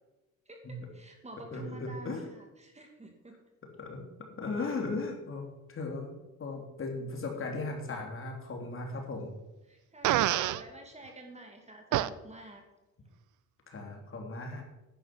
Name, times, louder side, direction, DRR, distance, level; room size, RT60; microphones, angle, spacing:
voice 1, 0.5-3.4 9.7-12.6, right 1 dB, 20° right, 3 dB, 2.6 m, -49 dB
voice 2, 1.5-2.3 3.8-4.1 4.4-6.1 6.4-9.3 13.7-14.6, left 3 dB, 45° left, 2 dB, 3.1 m, -37 dB
Fart, 10.0-10.6 11.9-12.1, right 14 dB, 80° right, 0.6 m, -26 dB
11.0 x 9.3 x 6.0 m, 1.0 s
cardioid pair, 90°, 30 cm